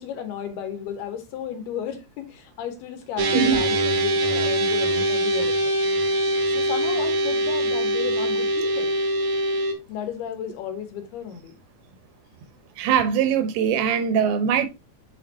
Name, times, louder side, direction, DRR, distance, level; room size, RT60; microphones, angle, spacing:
voice 1, 0.0-5.7 6.5-8.9 9.9-11.6, left 9 dB, 70° left, 3.0 m, -34 dB
sound 1, 3.2-9.7, right 1 dB, 70° right, 1.8 m, -23 dB
voice 2, 12.8-14.7, right 8 dB, 85° right, 3.4 m, -21 dB
8.6 x 5.0 x 2.8 m
omnidirectional pair, 5.1 m